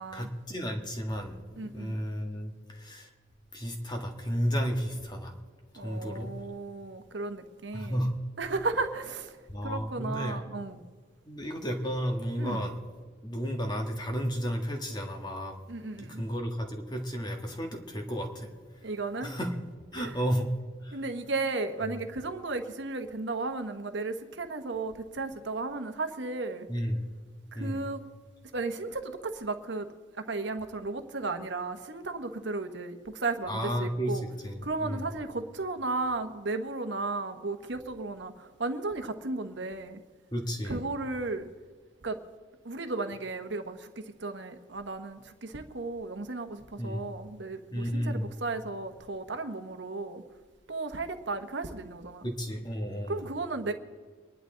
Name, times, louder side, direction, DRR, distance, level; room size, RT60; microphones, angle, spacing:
voice 1, 0.1-3.1 3.5-5.3 5.8-6.3 7.7-8.1 9.5-10.4 11.2-12.8 13.2-15.6 16.0-18.5 19.2-19.5 19.9-20.5 20.8-21.0 21.9-22.0 26.7-27.1 27.5-27.9 33.5-35.1 40.3-40.8 46.8-47.1 47.7-48.3 52.2-53.2, equal, 20° left, 1.6 m, -33 dB
voice 2, 1.6-1.9 5.7-8.1 8.4-9.4 9.6-10.8 12.4-12.7 15.7-16.2 18.8-19.3 19.9-20.1 20.9-26.7 27.5-28.1 28.5-29.9 30.2-34.2 34.6-40.0 40.6-41.5 42.0-42.2 42.6-50.2 50.7-52.3 53.1-53.7, right 3 dB, 65° right, 1.1 m, -34 dB
25.0 x 11.0 x 3.9 m
head